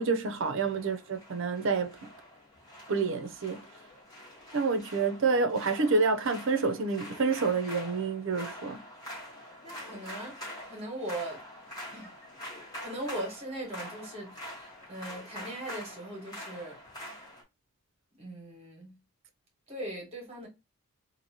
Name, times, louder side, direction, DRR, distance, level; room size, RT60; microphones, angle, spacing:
voice 1, 0.0-2.1 2.9-3.6 4.5-8.8, right 4 dB, 60° right, 0.5 m, -28 dB
sound 1, 0.6-17.4, equal, 15° left, 1.3 m, -45 dB
voice 2, 9.6-11.4 11.9-12.1 12.8-16.8 18.2-18.9 19.7-20.5, right 1 dB, 30° right, 1.4 m, -40 dB
3.0 x 2.5 x 2.7 m
head